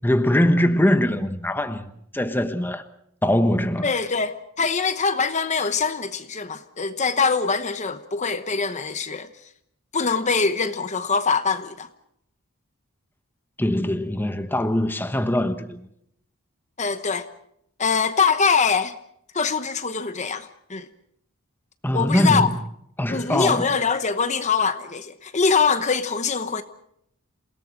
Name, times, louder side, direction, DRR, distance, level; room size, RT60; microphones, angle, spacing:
voice 1, 0.0-2.8 3.2-3.9 13.6-15.8 21.8-22.6 23.0-23.7, left 1 dB, 10° left, 1.1 m, -22 dB
voice 2, 3.8-9.3 9.9-11.9 16.8-17.3 17.8-18.9 19.3-20.9 21.9-22.5 23.1-26.6, left 5 dB, 35° left, 1.0 m, -23 dB
28.5 x 18.0 x 6.2 m
head